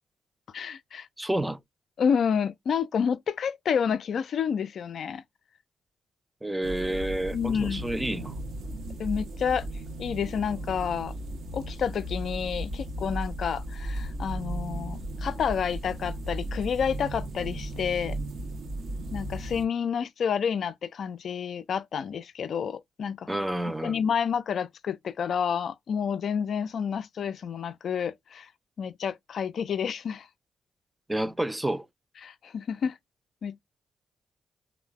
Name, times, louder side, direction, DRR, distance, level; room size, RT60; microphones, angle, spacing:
voice 1, 0.5-1.1 2.0-5.2 7.3-7.8 9.0-9.7 10.0-11.1 11.5-18.2 19.1-23.3 23.8-28.5 28.8-30.3 32.2-33.0 33.4-33.6, left 7 dB, 65° left, 0.3 m, -29 dB
voice 2, 1.2-1.6 6.4-8.4 23.3-24.0 31.1-31.9, right 1 dB, 15° right, 0.4 m, -29 dB
sound 1, 6.6-19.6, right 1 dB, 75° right, 0.6 m, -35 dB
3.1 x 2.0 x 2.2 m
hypercardioid pair, 40°, 0 cm